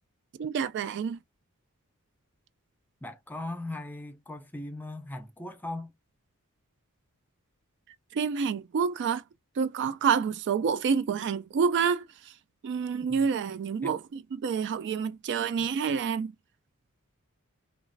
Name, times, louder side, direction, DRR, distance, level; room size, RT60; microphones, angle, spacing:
voice 1, 0.4-1.2 8.1-9.2 9.6-12.3 12.6-16.3, right 6 dB, 55° right, 0.3 m, -28 dB
voice 2, 3.0-6.0 13.1-13.3 13.8-13.9 15.6-15.7, left 2 dB, 10° left, 0.5 m, -39 dB
2.9 x 2.4 x 2.5 m
head